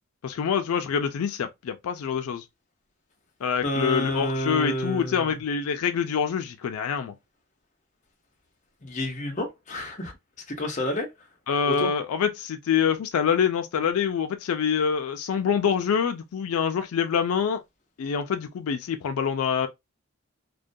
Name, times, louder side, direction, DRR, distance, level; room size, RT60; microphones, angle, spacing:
voice 1, 0.2-2.4 3.4-7.1 11.5-17.6 18.0-19.7, left 7 dB, 85° left, 0.4 m, -26 dB
voice 2, 3.6-5.4 8.8-10.1 10.5-11.1 11.7-11.9, left 1 dB, 35° left, 0.6 m, -29 dB
2.3 x 2.2 x 2.5 m
head